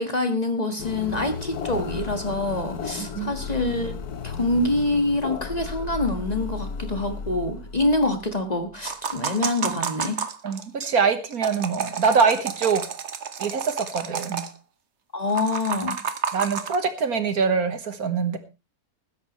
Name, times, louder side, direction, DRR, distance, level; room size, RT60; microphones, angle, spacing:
voice 1, 0.0-3.9 4.2-10.2 15.1-16.0, left 2 dB, 25° left, 6 dB, 1.7 m, -25 dB
sound 1, 0.8-8.7, left 5 dB, 80° left, 1.5 m, -34 dB
voice 2, 3.0-3.3 10.4-12.8 13.4-14.4 16.3-18.4, right 5 dB, 70° right, 9 dB, 1.8 m, -24 dB
sound 2, 8.9-10.9 11.3-14.5 15.3-16.8, right 6 dB, 50° right, 1.3 m, -30 dB
20.5 x 10.5 x 3.1 m, 0.27 s
omnidirectional pair, 1.6 m